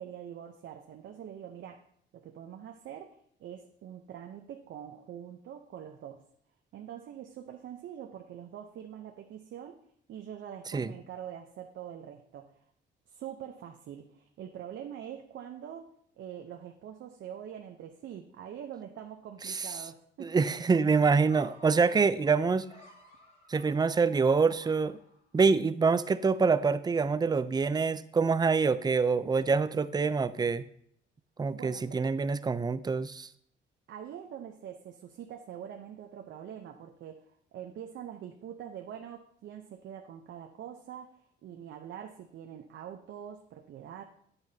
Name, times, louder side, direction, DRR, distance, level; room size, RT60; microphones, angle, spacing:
voice 1, 0.0-1.8 2.1-6.2 6.7-9.8 10.1-12.6 13.1-20.5 31.5-32.0 33.9-44.0, right 9 dB, 70° right, 4 dB, 0.7 m, -44 dB
voice 2, 20.2-22.6 23.5-25.0 25.3-30.6 31.4-33.3, right 4 dB, 20° right, 15 dB, 0.4 m, -26 dB
sound 1, 21.2-25.4, equal, 75° left, 3.4 m, -55 dB
9.7 x 8.8 x 2.8 m, 0.66 s
cardioid pair, 90°, 20 cm